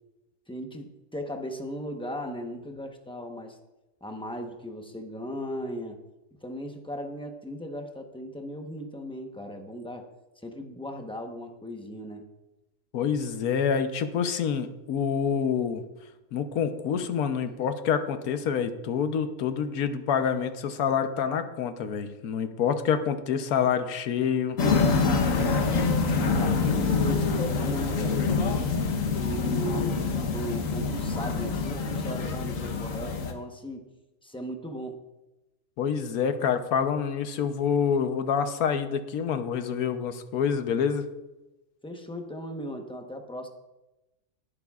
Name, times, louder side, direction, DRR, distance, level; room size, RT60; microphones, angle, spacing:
voice 1, 0.5-3.6 4.0-6.0 6.4-10.1 10.4-12.3 26.2-28.6 29.1-33.9 34.2-35.0 41.8-43.5, equal, 5° left, 3 dB, 0.8 m, -37 dB
voice 2, 12.9-15.8 16.3-24.6 35.8-41.0, left 7 dB, 85° left, 9 dB, 1.3 m, -27 dB
sound 1, 24.6-33.3, left 4 dB, 65° left, 1.4 m, -26 dB
21.0 x 8.6 x 2.4 m, 1.0 s
omnidirectional pair, 1.5 m